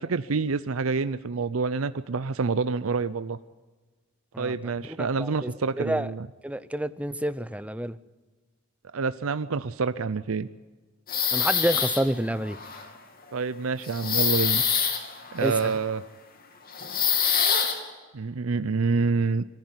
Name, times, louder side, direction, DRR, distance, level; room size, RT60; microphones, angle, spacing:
voice 1, 0.0-3.4 4.4-6.3 8.9-10.5 13.3-14.6 15.3-16.0 18.1-19.4, right 4 dB, 75° right, 13 dB, 0.6 m, -27 dB
voice 2, 4.9-5.5 5.8-6.1 6.4-8.0 11.3-12.6 15.4-15.7, right 1 dB, 5° right, 14 dB, 0.6 m, -28 dB
sound 1, 11.1-12.2 12.4-12.9 13.8-15.9 16.7-17.8, left 7 dB, 45° left, 2.8 m, -25 dB
21.5 x 14.5 x 9.5 m, 1.3 s
head